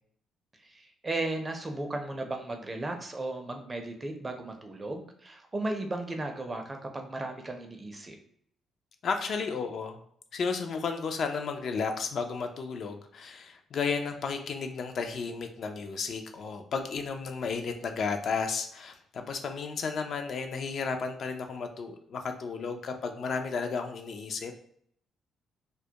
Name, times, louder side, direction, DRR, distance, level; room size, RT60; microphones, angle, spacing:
voice 1, 0.5-8.2, right 2 dB, 25° right, 4 dB, 0.4 m, -35 dB
voice 2, 9.0-10.0 10.3-24.5, left 5 dB, 60° left, 5 dB, 0.3 m, -33 dB
2.1 x 2.1 x 2.7 m, 0.66 s
cardioid pair, 90°, 0 cm